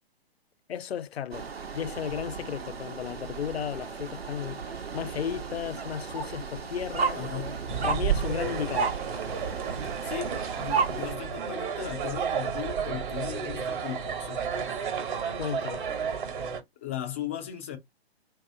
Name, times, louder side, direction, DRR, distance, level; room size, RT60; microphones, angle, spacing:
voice 1, 0.7-7.2 7.8-9.0 15.4-15.8, left 8 dB, 75° left, 0.5 m, -34 dB
sound 1, 1.3-11.2, right 5 dB, 70° right, 1.0 m, -34 dB
voice 2, 7.1-7.6 10.0-14.4 16.8-17.8, left 12 dB, 15° left, 0.3 m, -37 dB
sound 2, 7.7-16.6, right 7 dB, 50° right, 1.3 m, -32 dB
2.9 x 2.8 x 3.7 m
figure-of-eight pair, 130°, 31 cm